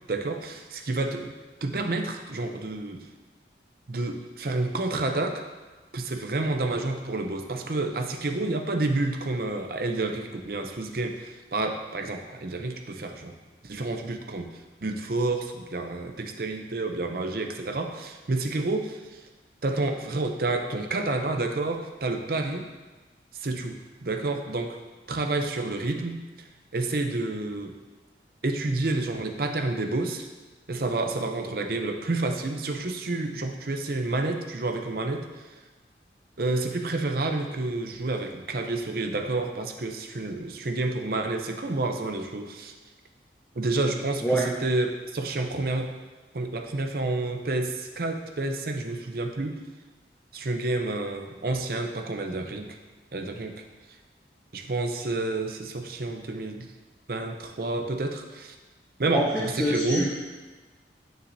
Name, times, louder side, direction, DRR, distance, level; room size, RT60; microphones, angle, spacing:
voice 1, 0.1-1.3 1.6-3.1 3.9-5.4 5.9-13.3 13.6-14.5 14.8-19.2 19.6-22.7 23.3-24.8 25.1-26.2 26.7-27.7 28.4-30.3 30.7-35.3 36.4-42.7 43.5-45.9 46.3-49.6 50.3-52.8 53.1-53.6 54.5-56.7 57.1-58.5 59.0-60.1, right 2 dB, 55° right, 4 dB, 0.7 m, -29 dB
voice 2, 59.1-60.1, right 1 dB, 10° left, -4 dB, 0.6 m, -26 dB
9.6 x 6.3 x 2.7 m, 1.3 s
head